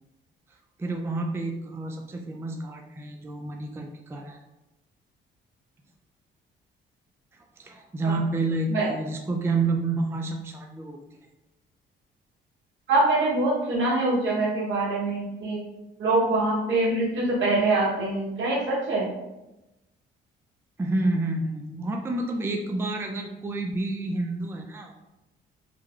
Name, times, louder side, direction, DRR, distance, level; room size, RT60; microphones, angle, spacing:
voice 1, 0.8-4.4 7.6-11.0 20.8-24.9, right 2 dB, 10° right, 2 dB, 0.4 m, -29 dB
voice 2, 12.9-15.6 16.0-19.1, right 2 dB, 75° right, -5 dB, 1.5 m, -24 dB
3.2 x 2.2 x 3.7 m, 0.98 s
cardioid pair, 90°, 20 cm